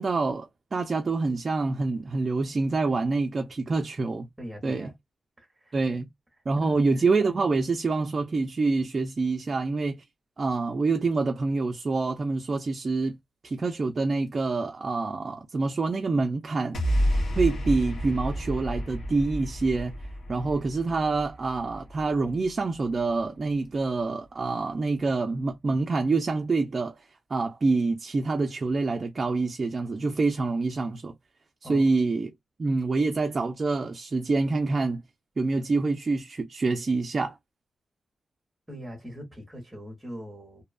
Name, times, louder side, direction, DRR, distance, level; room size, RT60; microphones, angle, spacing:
voice 1, 0.0-4.3 4.6-4.9 5.7-6.1 6.5-10.0 10.4-13.2 13.4-16.8 17.4-19.9 20.3-27.0 27.3-31.1 31.7-32.3 32.6-35.0 35.4-37.3, right 3 dB, 30° right, 0.3 m, -26 dB
voice 2, 4.4-4.9 5.4-5.7 6.5-6.8 31.6-31.9 38.7-40.6, equal, 5° right, 0.9 m, -41 dB
sound 1, 16.7-23.2, equal, 60° left, 0.9 m, -30 dB
2.6 x 2.2 x 2.3 m
wide cardioid pair, 175°, 0 cm